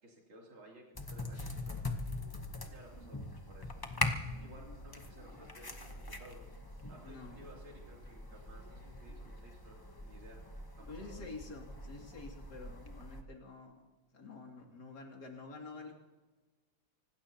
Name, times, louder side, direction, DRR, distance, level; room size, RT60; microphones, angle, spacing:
voice 1, 0.0-1.8 2.7-3.8 4.4-6.4 6.9-10.4 10.8-11.3, right 1 dB, 70° right, -3 dB, 3.8 m, -56 dB
sound 1, 0.9-13.2, left 2 dB, 30° left, 0.4 m, -42 dB
voice 2, 7.0-7.4 10.9-13.8 14.1-16.0, left 3 dB, 50° left, 1 dB, 3.0 m, -49 dB
25.5 x 18.5 x 2.9 m, 1.2 s
omnidirectional pair, 2.3 m